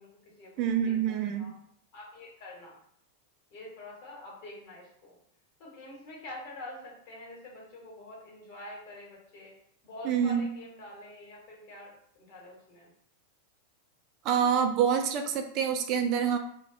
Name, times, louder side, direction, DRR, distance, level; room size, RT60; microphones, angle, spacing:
voice 1, 0.0-0.5 0.8-0.9 1.2-1.5 1.9-2.8 3.5-5.2 5.6-9.5 9.8-12.9, left 1 dB, 45° left, -2 dB, 1.1 m, -46 dB
voice 2, 0.6-1.5 10.0-10.5 14.2-16.4, right 8 dB, 40° right, 5 dB, 0.3 m, -26 dB
2.2 x 2.2 x 3.6 m, 0.67 s
figure-of-eight pair, 90°, 0 cm